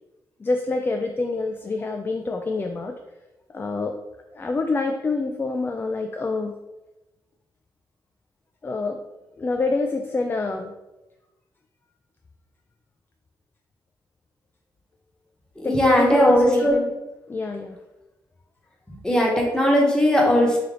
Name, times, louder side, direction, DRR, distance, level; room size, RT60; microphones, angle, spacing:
voice 1, 0.4-2.9 3.5-3.9 4.3-6.5 8.6-9.0 9.4-10.7 15.6-16.9 17.3-17.8, left 3 dB, 25° left, 4 dB, 0.3 m, -26 dB
voice 2, 15.6-16.7 19.0-20.6, equal, 10° left, -2 dB, 1.0 m, -18 dB
3.3 x 2.8 x 3.7 m, 1.0 s
cardioid pair, 95°, 8 cm